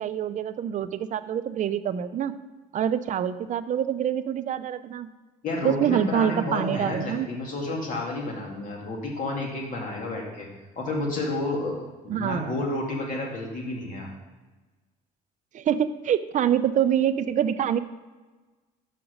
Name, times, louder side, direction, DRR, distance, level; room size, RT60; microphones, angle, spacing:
voice 1, 0.0-2.4 2.7-5.1 5.6-7.3 12.1-12.6 15.5-17.8, right 9 dB, 45° right, 12 dB, 0.5 m, -25 dB
voice 2, 5.4-10.5 10.8-11.7 12.0-14.1, left 2 dB, 50° left, -1 dB, 2.3 m, -30 dB
5.9 x 5.1 x 6.4 m, 1.3 s
cardioid pair, 110°, 17 cm